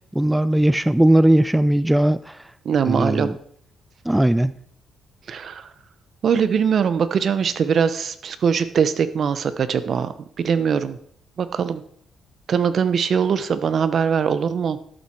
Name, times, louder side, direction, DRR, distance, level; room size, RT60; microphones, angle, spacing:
voice 1, 0.1-2.4 2.9-3.3 4.1-4.5, right 1 dB, 5° right, 16 dB, 0.4 m, -18 dB
voice 2, 2.6-3.3 5.3-5.7 6.2-10.1 10.4-11.0 11.4-11.8 12.5-14.8, right 7 dB, 55° right, 13 dB, 0.9 m, -21 dB
12.5 x 7.5 x 4.6 m, 0.64 s
cardioid pair, 90°, 0 cm